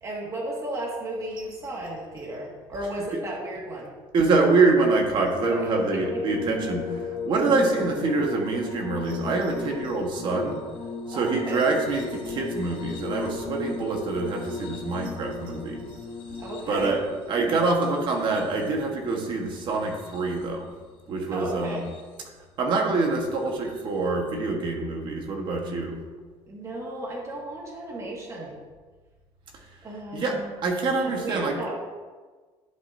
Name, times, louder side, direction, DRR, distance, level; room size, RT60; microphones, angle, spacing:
voice 1, 0.0-3.9 5.5-5.6 5.9-6.0 11.1-11.7 16.4-17.0 21.3-21.9 26.5-28.6 29.8-30.5 31.0-31.7, right 1 dB, 30° right, -2 dB, 1.9 m, -34 dB
voice 2, 4.1-10.6 11.1-16.0 16.3-16.4 16.7-17.0 17.3-20.7 21.1-21.8 22.6-26.0 30.1-31.6, right 3 dB, 50° right, 2 dB, 1.3 m, -25 dB
sound 1, 5.4-20.7 21.5-22.2 23.7-23.8, left 4 dB, 50° left, 1.3 m, -36 dB
11.0 x 7.1 x 2.7 m, 1.4 s
cardioid pair, 150°, 11 cm